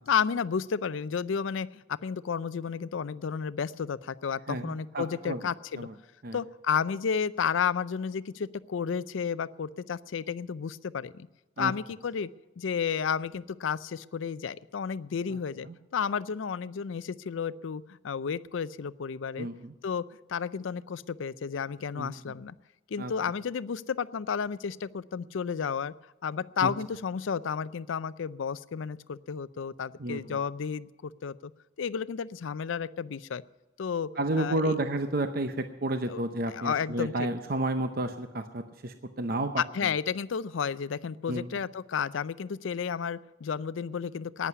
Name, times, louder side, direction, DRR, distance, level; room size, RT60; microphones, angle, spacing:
voice 1, 0.1-5.9 6.3-11.3 11.6-12.3 12.6-19.5 19.8-20.0 20.3-22.6 22.9-25.9 26.2-31.5 31.8-33.4 33.8-34.1 34.4-34.8 36.1-36.2 36.5-37.1 39.6-44.5, left 6 dB, 80° left, 17 dB, 0.4 m, -32 dB
voice 2, 4.5-5.4 5.8-5.9 6.2-6.4 11.6-11.7 15.3-15.4 15.6-15.7 19.4-19.7 21.9-22.2 23.0-23.1 26.6-26.7 30.0-30.4 34.2-39.9 41.3-41.5, right 2 dB, 50° right, 8 dB, 0.7 m, -31 dB
11.5 x 9.6 x 9.4 m, 1.1 s
head